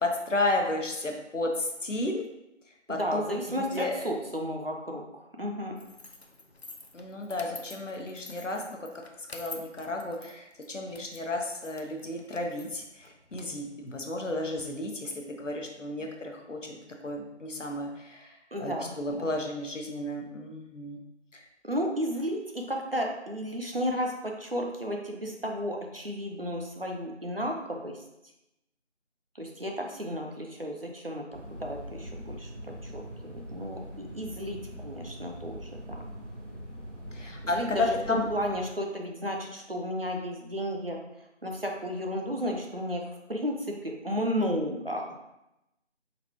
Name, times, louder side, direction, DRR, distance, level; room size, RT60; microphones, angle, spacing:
voice 1, 0.0-2.2 2.9-3.2 3.5-3.9 6.9-8.8 9.3-16.8 17.0-21.0 37.1-38.3, left 2 dB, 85° left, 2 dB, 0.9 m, -32 dB
voice 2, 2.9-5.7 18.5-19.3 21.6-27.9 29.4-31.3 31.5-32.5 32.8-33.0 33.3-36.0 37.2-41.0 41.4-45.1, equal, 50° right, 1 dB, 0.6 m, -33 dB
sound 1, 5.8-14.6, left 3 dB, 60° left, 0.5 m, -49 dB
sound 2, 31.3-38.6, equal, 70° right, 1.5 m, -42 dB
3.9 x 3.5 x 2.9 m, 0.88 s
figure-of-eight pair, 180°, 36 cm